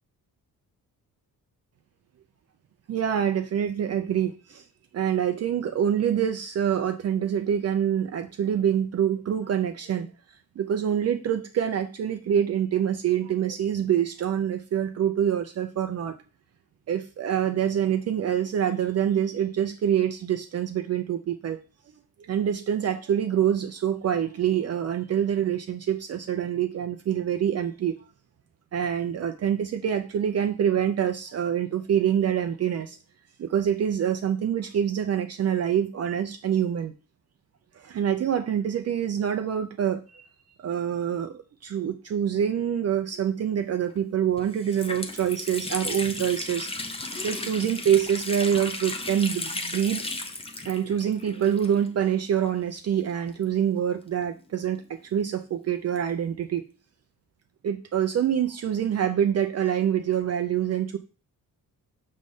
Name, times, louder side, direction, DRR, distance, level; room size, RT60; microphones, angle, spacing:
voice 1, 2.9-4.6 4.9-10.1 10.6-16.1 16.9-21.6 22.2-28.0 28.7-33.0 33.4-36.9 37.7-40.2 40.6-46.7 47.1-50.1 50.7-56.6 57.6-61.0, right 9 dB, 45° right, 6 dB, 0.5 m, -26 dB
Water tap faucet, 43.9-44.0 44.4-52.1 52.4-52.5 53.3-54.8, left 2 dB, 15° left, 0.6 m, -35 dB
6.4 x 3.2 x 5.4 m, 0.34 s
cardioid pair, 155°, 37 cm